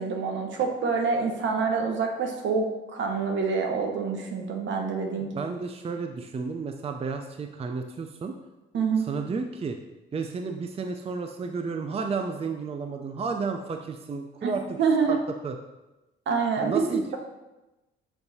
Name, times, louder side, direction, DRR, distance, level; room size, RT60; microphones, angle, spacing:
voice 1, 0.0-2.7 2.9-5.4 8.7-9.1 14.4-14.5 14.8-15.2 16.3-17.2, right 5 dB, 70° right, 3 dB, 1.1 m, -26 dB
voice 2, 5.3-8.3 9.0-9.8 10.1-14.8 15.1-15.6 16.6-17.0, right 5 dB, 30° right, 5 dB, 0.5 m, -32 dB
7.0 x 5.8 x 2.8 m, 1.0 s
cardioid pair, 90°, 20 cm